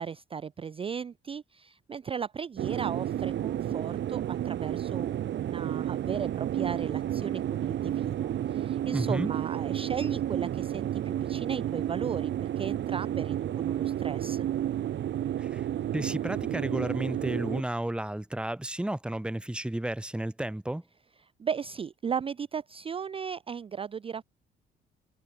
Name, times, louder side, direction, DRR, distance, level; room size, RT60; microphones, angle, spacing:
voice 1, 0.0-14.5 21.2-24.2, right 7 dB, 30° right, 0.4 m, -36 dB
sound 1, 2.6-17.6, right 11 dB, 65° right, 1.2 m, -31 dB
voice 2, 8.9-9.3 15.4-15.7 15.9-20.8, right 1 dB, 5° right, 0.9 m, -32 dB
cardioid pair, 90°, 20 cm